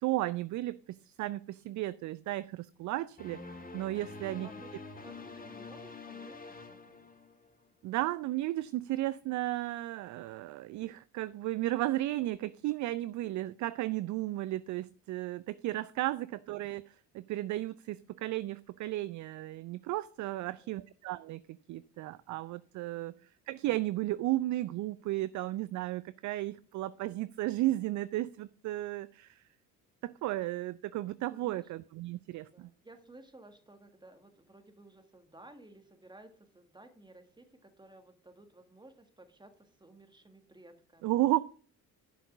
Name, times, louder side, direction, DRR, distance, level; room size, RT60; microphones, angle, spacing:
voice 1, 0.0-3.4 3.7-4.5 7.8-21.4 21.7-23.1 23.5-29.4 30.0-32.7 41.0-41.4, right 16 dB, 40° right, 0.4 m, -34 dB
sound 1, 3.2-7.7, left 3 dB, 20° left, 1.9 m, -47 dB
voice 2, 4.3-4.7 5.0-6.4 6.7-7.0 20.3-20.7 22.9-23.2 31.3-31.7 32.5-41.1, right 2 dB, 10° right, 1.7 m, -56 dB
11.0 x 4.8 x 6.0 m
figure-of-eight pair, 50°, 48 cm